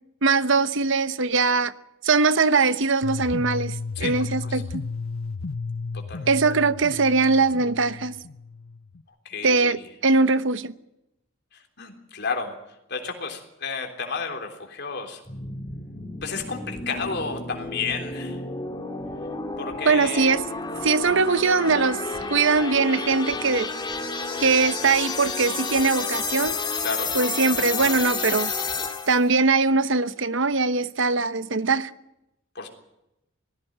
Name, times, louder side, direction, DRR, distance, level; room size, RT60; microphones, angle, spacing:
voice 1, 0.2-1.7 2.0-4.8 6.3-8.1 9.4-10.7 19.9-20.4 20.8-22.0 22.3-23.7 24.4-26.6 27.1-28.5 29.1-31.9, right 4 dB, 60° right, 1.0 m, -21 dB
sound 1, 3.0-9.0, left 4 dB, 80° left, 0.8 m, -33 dB
voice 2, 5.9-6.6 9.3-9.8 11.5-12.6 12.9-15.2 16.2-18.4 19.6-20.4 20.8-20.9 26.8-27.1 32.6-32.7, left 5 dB, 55° left, 3.6 m, -32 dB
sound 2, 15.3-29.3, left 4 dB, 20° left, 2.1 m, -31 dB
19.0 x 15.5 x 8.9 m
head